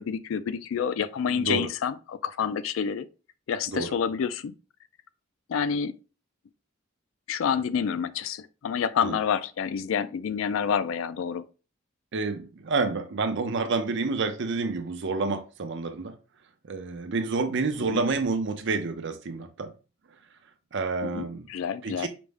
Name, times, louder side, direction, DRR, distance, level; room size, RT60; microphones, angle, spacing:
voice 1, 0.0-3.1 3.5-4.5 5.5-6.0 7.3-11.4 17.8-18.0 21.0-22.1, left 7 dB, 75° left, 0.3 m, -28 dB
voice 2, 1.3-1.7 3.7-3.9 9.0-9.2 12.1-16.1 16.7-19.7 20.7-21.5 21.8-22.1, right 4 dB, 65° right, 0.6 m, -29 dB
5.0 x 2.1 x 3.4 m
head